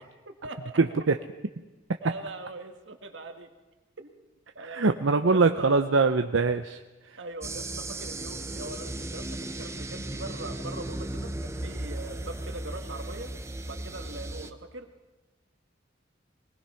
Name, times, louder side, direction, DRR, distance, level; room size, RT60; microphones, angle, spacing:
voice 1, 0.3-0.8 2.0-3.5 4.0-4.1 4.6-4.9 5.3-5.8 7.2-13.3 13.6-14.9, right 2 dB, 70° right, 5 dB, 2.0 m, -41 dB
voice 2, 0.8-1.2 4.6-7.2, right 4 dB, 85° right, 7 dB, 0.8 m, -23 dB
sound 1, 7.4-14.5, right 1 dB, 15° right, 0.9 m, -36 dB
24.0 x 19.0 x 5.8 m, 1.1 s
head